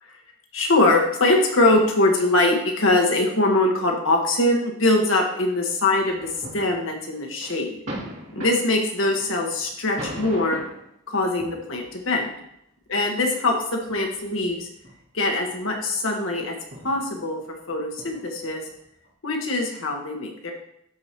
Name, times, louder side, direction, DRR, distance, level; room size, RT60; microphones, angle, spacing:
voice 1, 0.5-7.7 8.3-10.6 11.1-12.3 12.9-14.7 15.1-16.5 16.8-17.4 17.7-18.6 19.2-20.5, left 2 dB, 75° left, 1 dB, 1.4 m, -22 dB
sound 1, 6.0-7.0 7.4-10.9 11.4-12.0 12.8-12.9 13.7-15.0 15.3-15.7 16.0-16.1 16.6-19.1, equal, 65° right, 2.4 m, -39 dB
12.5 x 4.8 x 3.0 m, 0.75 s
head